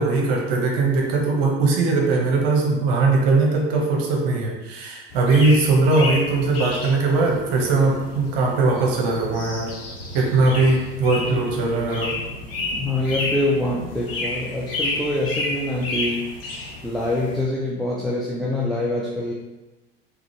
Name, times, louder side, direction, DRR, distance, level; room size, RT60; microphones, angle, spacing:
voice 1, 0.0-9.7 10.1-12.1, right 3 dB, 50° right, 0 dB, 1.0 m, -20 dB
sound 1, 5.1-17.4, left 2 dB, 65° left, 1.0 m, -31 dB
voice 2, 12.7-16.3 16.8-19.3, left 1 dB, ahead, -5 dB, 0.4 m, -25 dB
3.9 x 3.0 x 3.1 m, 1.1 s
figure-of-eight pair, 75°, 31 cm